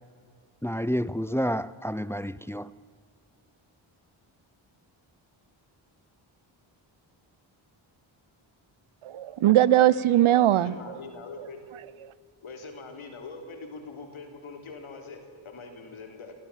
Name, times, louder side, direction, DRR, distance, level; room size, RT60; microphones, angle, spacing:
voice 1, 0.6-2.6, equal, 5° left, 0.6 m, -29 dB
voice 2, 9.0-11.0 11.4-11.5 12.0-12.1, right 13 dB, 80° right, 0.9 m, -21 dB
voice 3, 10.6-11.6 12.4-16.3, left 4 dB, 80° left, 3.5 m, -43 dB
25.5 x 15.5 x 7.4 m
cardioid pair, 60°, 49 cm